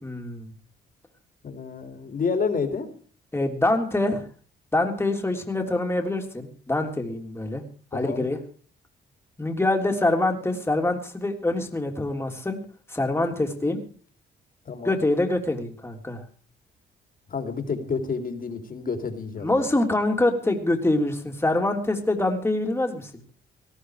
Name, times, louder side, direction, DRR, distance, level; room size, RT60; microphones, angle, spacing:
voice 1, 0.0-0.5 3.3-4.2 4.7-7.6 7.9-8.4 9.4-12.6 12.9-13.8 14.8-16.2 19.4-23.1, left 2 dB, 10° left, 3 dB, 3.4 m, -25 dB
voice 2, 1.4-2.9 7.9-8.3 14.6-15.0 17.3-19.7, left 5 dB, 45° left, 7 dB, 3.2 m, -29 dB
18.5 x 13.0 x 5.0 m, 0.43 s
cardioid pair, 90°, 20 cm